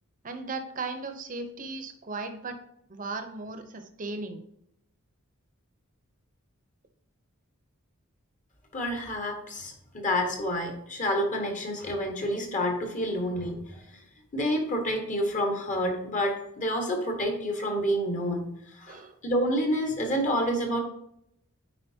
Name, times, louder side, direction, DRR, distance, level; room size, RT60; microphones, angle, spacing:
voice 1, 0.2-2.6 2.9-4.4 18.9-19.2, right 3 dB, 40° right, 7 dB, 0.8 m, -36 dB
voice 2, 8.7-13.8 14.3-18.5 18.8-20.8, equal, 35° left, 2 dB, 1.5 m, -28 dB
9.1 x 4.8 x 2.8 m, 0.75 s
head